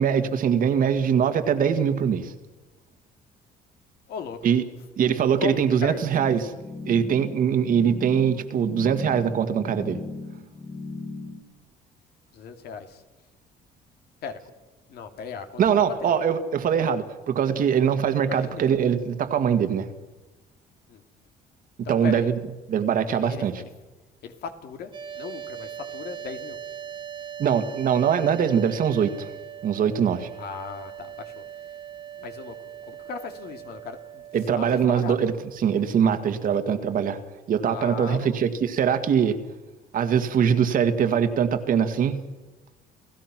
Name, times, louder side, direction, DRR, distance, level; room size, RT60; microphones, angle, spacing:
voice 1, 0.0-2.3 4.4-4.6 5.0-6.5 6.9-10.0 15.6-19.9 21.9-22.4 22.7-23.5 27.4-29.3 29.6-30.3 34.3-35.3 35.6-37.2 37.5-39.4 39.9-42.2, right 8 dB, 55° right, 8 dB, 1.8 m, -22 dB
voice 2, 4.1-4.5 5.4-6.5 12.3-13.0 14.2-14.4 14.9-16.1 18.2-18.6 20.9-21.0 21.8-22.3 23.1-23.7 24.2-26.6 30.4-31.4 32.2-35.3 37.6-38.4, left 6 dB, 70° left, 6 dB, 2.5 m, -37 dB
sound 1, 6.1-11.4, left 3 dB, 20° left, 2.4 m, -37 dB
sound 2, 24.9-35.0, right 9 dB, 30° right, 2.1 m, -40 dB
29.5 x 16.0 x 6.0 m, 1.2 s
cardioid pair, 110°, 17 cm